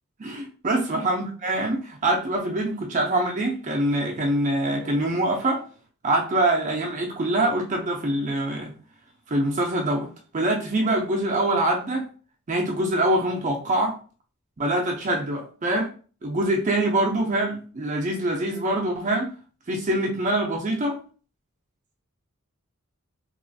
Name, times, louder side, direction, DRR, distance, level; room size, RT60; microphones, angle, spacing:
voice 1, 0.2-5.6 6.0-8.7 9.3-10.1 10.3-12.1 12.5-14.0 14.6-15.9 16.2-19.3 19.7-21.0, right 1 dB, 35° right, 0 dB, 0.5 m, -24 dB
2.9 x 2.4 x 2.6 m, 0.39 s
head